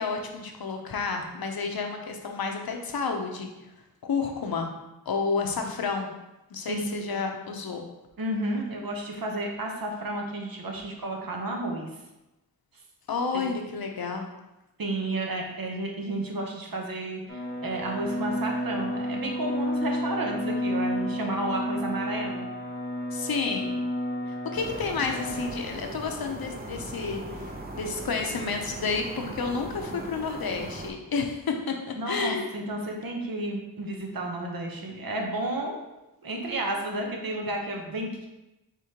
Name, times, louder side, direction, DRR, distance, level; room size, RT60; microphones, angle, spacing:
voice 1, 0.0-3.7 4.0-4.7 5.1-6.1 6.5-7.8 13.1-14.3 23.1-23.7 24.3-32.5, left 4 dB, 75° left, 3 dB, 0.7 m, -30 dB
voice 2, 8.2-11.9 13.3-13.5 14.8-22.5 32.0-35.8 36.2-38.3, right 1 dB, 70° right, 1 dB, 0.9 m, -32 dB
sound 1, 17.3-25.6, equal, 30° left, 1.0 m, -31 dB
sound 2, 24.5-30.9, right 2 dB, 25° right, 0.6 m, -39 dB
5.0 x 3.6 x 2.8 m, 0.96 s
wide cardioid pair, 75°, 36 cm